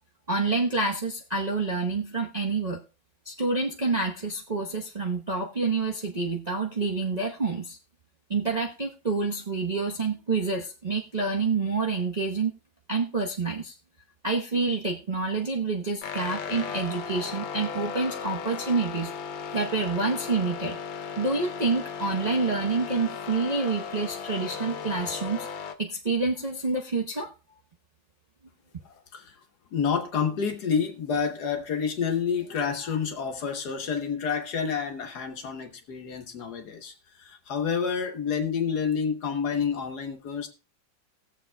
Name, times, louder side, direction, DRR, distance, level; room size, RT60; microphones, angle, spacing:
voice 1, 0.3-2.8 3.2-7.8 8.3-12.5 12.9-13.7 14.2-19.1 19.5-20.8 21.2-25.5 25.8-27.3, right 3 dB, 35° right, 0.7 m, -28 dB
sound 1, 16.0-25.8, left 6 dB, 90° left, 1.6 m, -36 dB
voice 2, 28.8-29.3 29.7-36.9 37.2-40.5, left 6 dB, 60° left, 1.6 m, -29 dB
20.0 x 7.3 x 2.2 m
omnidirectional pair, 2.1 m